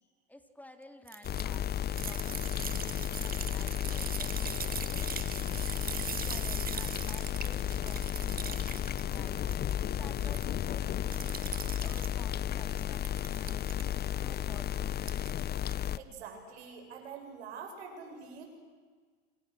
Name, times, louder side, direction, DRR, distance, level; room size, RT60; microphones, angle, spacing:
voice 1, 0.3-4.4 5.0-9.4 9.9-15.1, left 1 dB, 5° left, 6 dB, 3.6 m, -53 dB
sound 1, 1.1-9.7 10.0-10.7 11.1-12.1 12.6-13.8 15.0-15.4 15.7-15.9, right 7 dB, 30° right, 1.7 m, -41 dB
sound 2, 1.2-16.0, left 10 dB, 30° left, 0.8 m, -33 dB
voice 2, 16.0-18.5, right 5 dB, 80° right, 3 dB, 7.7 m, -45 dB
28.0 x 27.5 x 6.5 m, 1.5 s
hypercardioid pair, 95°, 32 cm